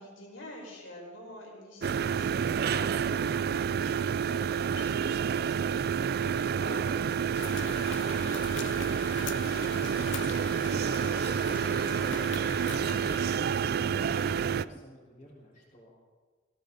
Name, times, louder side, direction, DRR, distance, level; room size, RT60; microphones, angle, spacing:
voice 1, 0.0-11.5, left 1 dB, 80° left, -1 dB, 5.3 m, -48 dB
sound 1, 1.8-14.7, right 7 dB, 50° right, 0.3 m, -29 dB
sound 2, 7.3-13.4, left 9 dB, 65° left, 0.5 m, -43 dB
sound 3, 9.7-14.8, right 1 dB, 15° right, 0.8 m, -45 dB
voice 2, 12.0-16.0, equal, 35° left, -9 dB, 4.4 m, -54 dB
19.0 x 17.0 x 4.1 m, 1.4 s
head